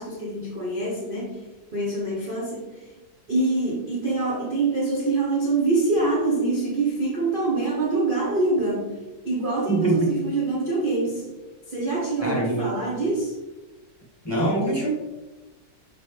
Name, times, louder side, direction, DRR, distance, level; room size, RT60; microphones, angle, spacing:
voice 1, 0.0-1.4 1.7-2.9 3.3-11.3 11.7-13.4, right 2 dB, 35° right, -5 dB, 1.0 m, -25 dB
voice 2, 9.7-10.1 12.2-12.7 14.2-14.9, right 2 dB, 15° left, -5 dB, 1.8 m, -23 dB
6.1 x 5.3 x 3.3 m, 1.1 s
omnidirectional pair, 1.9 m